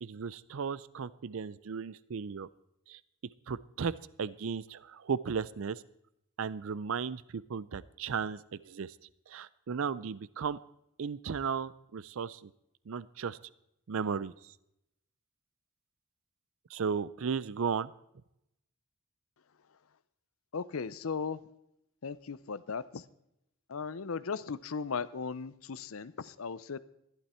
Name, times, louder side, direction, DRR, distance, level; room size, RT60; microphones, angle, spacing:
voice 1, 0.0-2.5 2.9-3.0 3.5-5.8 6.4-9.0 9.3-10.6 11.0-12.5 12.9-13.4 13.9-14.5 16.7-17.9, right 6 dB, 65° right, 19 dB, 0.4 m, -35 dB
voice 2, 20.5-21.4 22.0-23.0 23.7-26.8, left 5 dB, 70° left, 17 dB, 0.6 m, -37 dB
14.5 x 11.5 x 4.4 m, 0.80 s
head